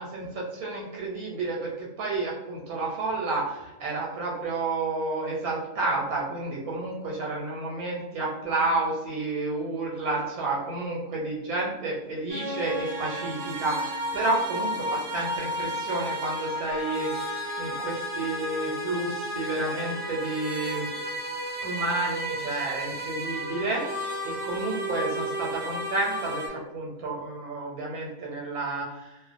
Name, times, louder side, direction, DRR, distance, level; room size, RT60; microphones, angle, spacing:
voice 1, 0.0-20.9 21.6-29.2, right 2 dB, 85° right, -3 dB, 1.0 m, -30 dB
sound 1, 12.3-26.5, equal, 60° right, 0.8 m, -33 dB
2.3 x 2.1 x 2.4 m, 0.97 s
omnidirectional pair, 1.5 m